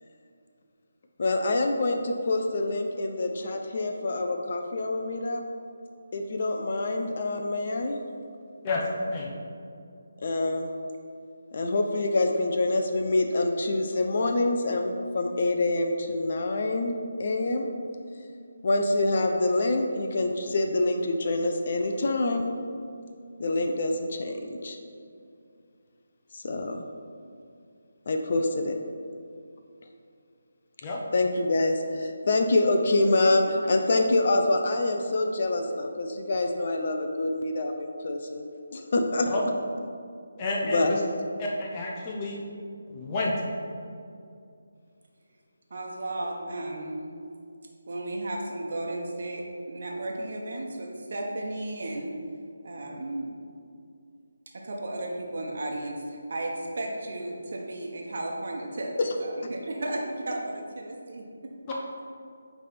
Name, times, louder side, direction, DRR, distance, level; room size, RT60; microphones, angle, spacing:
voice 1, 1.2-5.4 6.1-8.0 10.2-10.7 11.5-17.7 18.6-22.5 23.4-24.8 26.3-26.8 28.1-28.7 31.1-38.5 38.7-39.3 40.6-41.0 59.0-59.1, left 2 dB, 50° left, 4 dB, 0.6 m, -26 dB
voice 2, 8.6-9.3 30.8-31.0 39.3-39.4 40.4-41.0 41.4-42.4 42.9-43.4 61.7-61.8, left 2 dB, 25° left, -3 dB, 0.9 m, -30 dB
voice 3, 45.7-47.0 47.9-52.1 52.6-53.3 54.5-58.9 59.2-61.5, right 1 dB, 55° right, -1 dB, 1.1 m, -34 dB
9.1 x 3.4 x 4.3 m, 2.4 s
figure-of-eight pair, 155°, 0 cm